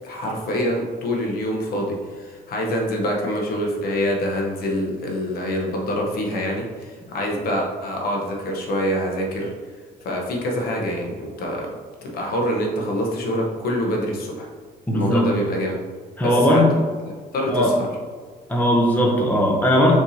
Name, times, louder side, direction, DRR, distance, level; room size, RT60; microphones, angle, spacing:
voice 1, 0.0-9.5 10.0-11.7 12.0-14.5 14.9-15.8 16.2-16.8 17.3-17.7, equal, 65° left, 0 dB, 1.0 m, -25 dB
voice 2, 14.9-15.3 16.2-16.7 17.5-17.7 18.5-19.9, equal, 10° left, -1 dB, 0.8 m, -18 dB
4.5 x 4.2 x 2.8 m, 1.5 s
cardioid pair, 110°, 17 cm